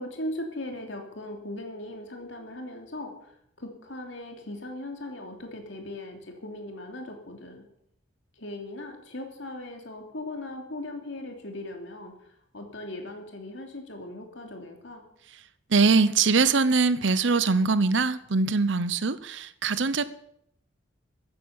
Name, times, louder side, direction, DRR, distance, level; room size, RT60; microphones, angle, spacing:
voice 1, 0.0-3.1 3.6-7.6 8.4-12.1 12.5-15.0, left 1 dB, 70° left, 3 dB, 3.1 m, -38 dB
voice 2, 15.7-20.1, right 4 dB, 70° right, 15 dB, 0.8 m, -22 dB
15.5 x 9.4 x 7.1 m, 0.73 s
head